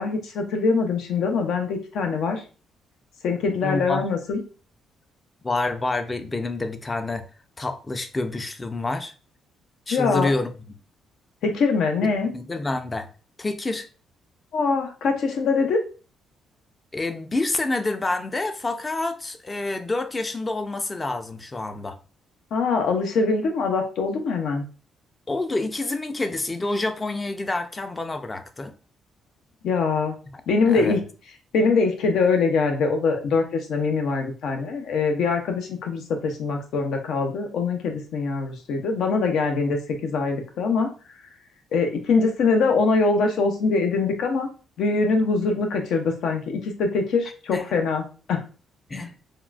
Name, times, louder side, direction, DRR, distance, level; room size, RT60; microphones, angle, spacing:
voice 1, 0.0-2.4 3.2-4.4 9.9-10.3 11.4-12.3 14.5-15.8 22.5-24.6 29.6-30.2 30.5-31.0 31.5-40.9 41.7-44.5 44.8-48.4, left 4 dB, 75° left, 0.6 m, -23 dB
voice 2, 3.6-4.0 5.4-7.2 7.6-9.1 9.9-10.5 12.0-13.1 13.4-13.9 16.9-22.0 25.3-28.7 30.7-31.0 47.5-47.8 48.9-49.1, left 2 dB, 25° left, 0.4 m, -28 dB
3.6 x 2.3 x 2.4 m
cardioid pair, 90°, 0 cm